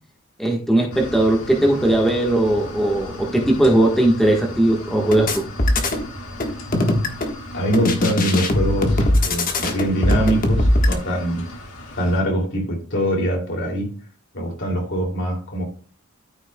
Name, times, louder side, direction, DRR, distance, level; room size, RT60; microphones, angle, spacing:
voice 1, 0.4-5.5, right 1 dB, ahead, 1.3 m, -18 dB
sound 1, 0.9-12.2, left 1 dB, 75° left, 1.8 m, -36 dB
sound 2, 5.1-6.0 6.4-7.3 7.7-10.9, left 1 dB, 40° left, 1.4 m, -20 dB
voice 2, 7.5-11.5 12.0-13.9 14.3-15.6, right 1 dB, 55° left, 2.7 m, -23 dB
13.5 x 6.4 x 2.2 m
head